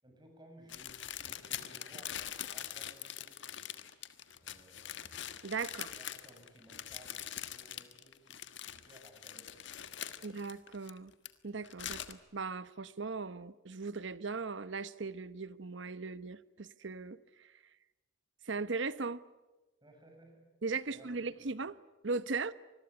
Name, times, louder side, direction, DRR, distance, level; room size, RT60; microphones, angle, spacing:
voice 1, 0.0-3.8 4.4-5.1 5.9-8.4 8.7-9.6 10.0-10.3 19.8-20.5 20.9-21.5, right 1 dB, 20° right, 7.0 m, -59 dB
sound 1, 0.7-11.3 11.6-12.1, left 10 dB, 60° left, 1.4 m, -43 dB
voice 2, 5.4-5.9 10.2-11.1 11.4-17.5 18.4-19.2 20.6-21.8 22.0-22.5, right 4 dB, 60° right, 0.9 m, -38 dB
26.0 x 21.0 x 9.7 m
head